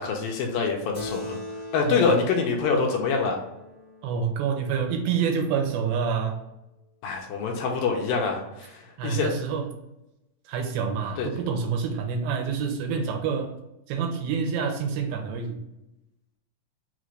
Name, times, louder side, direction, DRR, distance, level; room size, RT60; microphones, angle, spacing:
voice 1, 0.0-1.4 1.7-3.4 7.0-9.3 11.2-11.3, left 4 dB, 80° left, 1 dB, 2.4 m, -25 dB
Keyboard (musical), 0.9-5.8, left 2 dB, 55° left, 1.2 m, -41 dB
voice 2, 4.0-6.4 9.0-9.7 10.5-13.5 13.9-15.6, right 6 dB, 85° right, 3 dB, 2.5 m, -27 dB
5.7 x 2.5 x 3.2 m, 0.92 s
omnidirectional pair, 4.2 m